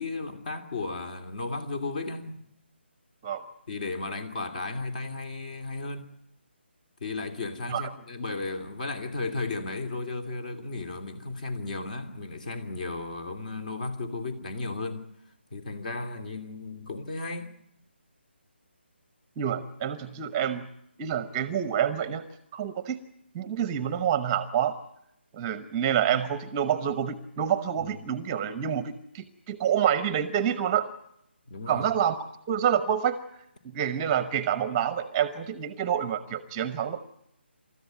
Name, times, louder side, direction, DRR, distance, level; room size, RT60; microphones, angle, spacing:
voice 1, 0.0-2.4 3.7-6.1 7.0-15.0 15.5-17.5 27.8-27.9 31.5-31.9, left 3 dB, 45° left, 2.8 m, -34 dB
voice 2, 19.4-20.7 21.0-23.0 23.3-24.7 25.3-30.9 31.7-32.2 32.5-33.2 33.7-37.0, right 9 dB, 20° right, 0.9 m, -27 dB
28.0 x 14.0 x 9.2 m
figure-of-eight pair, 150°, 6 cm